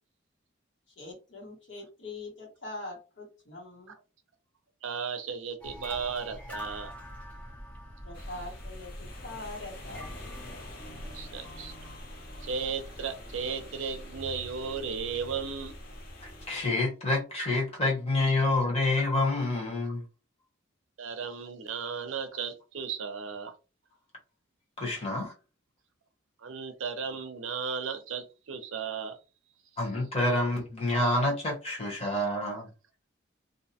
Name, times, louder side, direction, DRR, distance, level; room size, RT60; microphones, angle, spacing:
voice 1, 1.0-3.9 8.0-10.2 11.1-11.2, left 2 dB, 65° left, 1.3 m, -43 dB
voice 2, 4.8-6.9 11.1-11.7 12.4-15.7 21.0-23.5 26.4-29.2, right 6 dB, 75° right, 0.5 m, -35 dB
sound 1, 5.6-16.5, equal, 5° left, 0.5 m, -44 dB
sound 2, 8.1-16.7, left 2 dB, 45° left, 0.7 m, -49 dB
voice 3, 16.2-20.0 24.8-25.3 29.8-32.7, left 2 dB, 30° left, 1.0 m, -28 dB
2.6 x 2.1 x 2.7 m
head